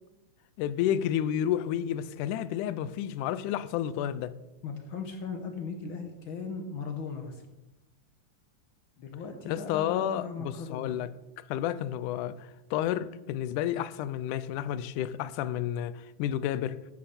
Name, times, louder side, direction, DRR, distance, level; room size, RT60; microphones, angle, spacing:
voice 1, 0.6-4.3 9.5-11.1 11.4-16.8, left 11 dB, 85° left, 2.1 m, -31 dB
voice 2, 4.6-7.4 9.0-10.9, left 5 dB, 65° left, 1.3 m, -38 dB
13.0 x 9.0 x 4.2 m
omnidirectional pair, 3.5 m